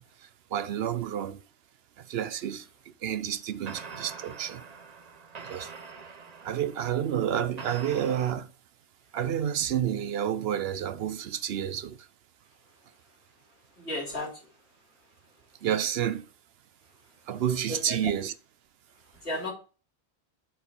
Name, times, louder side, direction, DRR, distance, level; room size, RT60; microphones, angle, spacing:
voice 1, 0.0-1.4 2.0-4.7 5.4-5.7 6.4-8.5 9.1-12.1 15.6-16.3 17.3-18.3, right 10 dB, 70° right, 0.8 m, -30 dB
sound 1, 3.7-8.3, right 5 dB, 40° right, 0.8 m, -44 dB
voice 2, 13.8-14.5 17.3-18.1 19.1-19.5, left 1 dB, 75° left, 3.3 m, -35 dB
7.7 x 4.3 x 5.4 m
omnidirectional pair, 1.1 m